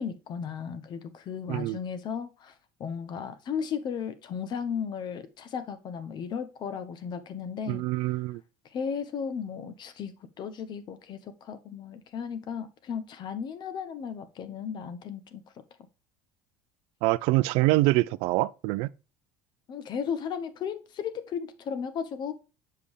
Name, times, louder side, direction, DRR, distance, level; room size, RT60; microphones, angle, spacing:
voice 1, 0.0-2.5 2.8-7.8 8.7-15.4 19.7-22.3, left 7 dB, 50° left, 1.0 m, -35 dB
voice 2, 1.5-1.8 7.7-8.4 17.0-18.9, right 19 dB, 70° right, 0.4 m, -25 dB
6.8 x 5.3 x 3.2 m
supercardioid pair, 90°, 10 cm